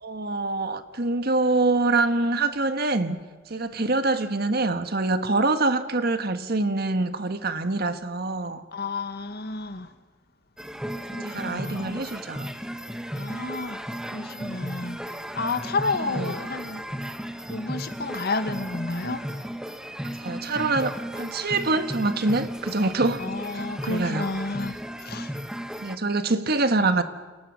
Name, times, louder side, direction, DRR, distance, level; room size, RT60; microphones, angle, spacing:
voice 1, 0.0-3.2 3.5-8.6 11.2-12.5 16.1-16.3 20.2-23.3 23.5-24.2 25.8-27.0, right 3 dB, 55° right, 1.6 m, -25 dB
voice 2, 8.7-9.9 11.2-12.0 13.1-15.0 15.3-16.9 17.5-19.4 23.2-25.4, left 3 dB, 55° left, 1.7 m, -31 dB
sound 1, 10.6-26.0, equal, 5° right, 1.2 m, -35 dB
29.5 x 29.0 x 6.4 m
head